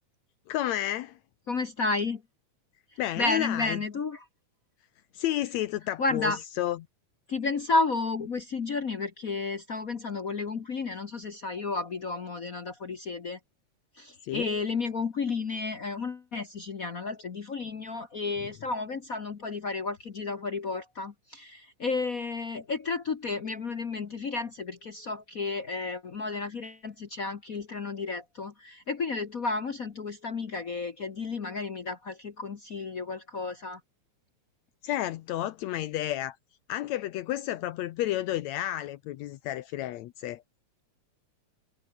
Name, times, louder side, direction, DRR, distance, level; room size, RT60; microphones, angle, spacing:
voice 1, 0.5-1.2 3.0-3.8 5.1-6.8 14.2-14.5 34.8-36.4 36.7-40.4, left 13 dB, 75° left, 2.0 m, -31 dB
voice 2, 1.5-2.2 3.2-4.2 6.0-6.4 7.3-13.4 14.0-33.8, left 3 dB, 50° left, 1.0 m, -32 dB
omnidirectional pair, 3.3 m